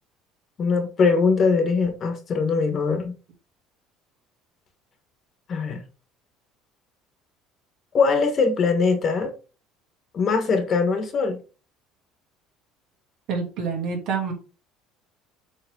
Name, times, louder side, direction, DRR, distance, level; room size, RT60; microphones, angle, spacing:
voice 1, 0.6-3.1 5.5-5.8 7.9-9.3 10.1-11.4, left 4 dB, 35° left, 1.5 m, -21 dB
voice 2, 13.3-14.3, right 5 dB, 60° right, 2.7 m, -27 dB
7.0 x 3.7 x 3.8 m
cardioid pair, 135°, 0 cm